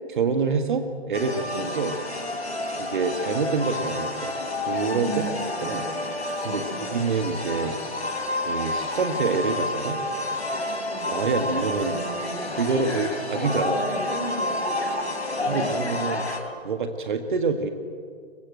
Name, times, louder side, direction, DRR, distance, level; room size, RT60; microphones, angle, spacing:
voice 1, 0.1-2.0 2.8-4.3 4.6-5.1 5.6-5.8 6.4-7.8 8.4-10.0 11.1-12.0 12.6-13.9 15.5-16.2 16.6-17.7, right 4 dB, 50° right, 7 dB, 1.7 m, -26 dB
sound 1, 1.1-16.4, left 2 dB, 80° left, 3.5 m, -29 dB
voice 2, 4.9-6.2 6.5-6.9 10.9-11.1 11.8-15.9, equal, 5° left, 2 dB, 3.5 m, -35 dB
23.0 x 20.5 x 7.8 m, 2.1 s
figure-of-eight pair, 135°, 32 cm